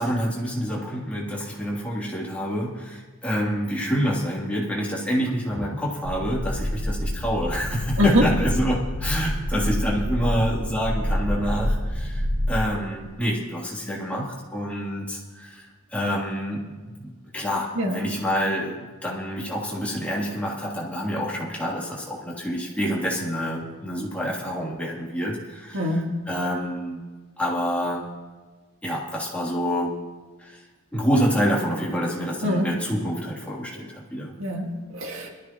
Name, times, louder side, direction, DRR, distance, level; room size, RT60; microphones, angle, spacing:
voice 1, 0.0-27.0 27.4-28.1 28.8-29.9 30.4-30.6 30.9-34.3, equal, 5° left, -6 dB, 3.0 m, -27 dB
sound 1, 6.0-12.6, equal, 50° right, 2.5 m, -27 dB
voice 2, 8.0-8.3 17.8-18.0 25.7-26.3 32.4-32.8 34.4-35.3, equal, 80° right, 1 dB, 2.0 m, -24 dB
21.0 x 14.0 x 3.0 m, 1.4 s
head